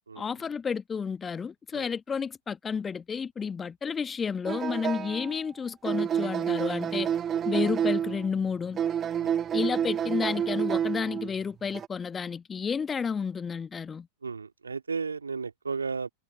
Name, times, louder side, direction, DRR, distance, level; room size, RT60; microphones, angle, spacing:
voice 1, 0.2-7.1 7.4-8.8 9.5-14.1, left 6 dB, 20° left, 1.4 m, -31 dB
sound 1, 4.5-5.4 5.8-8.3 8.7-11.3 11.7-11.9, right 9 dB, 25° right, 1.6 m, -29 dB
voice 2, 14.2-16.1, right 5 dB, 75° right, 2.4 m, -34 dB
figure-of-eight pair, 90°, 0 cm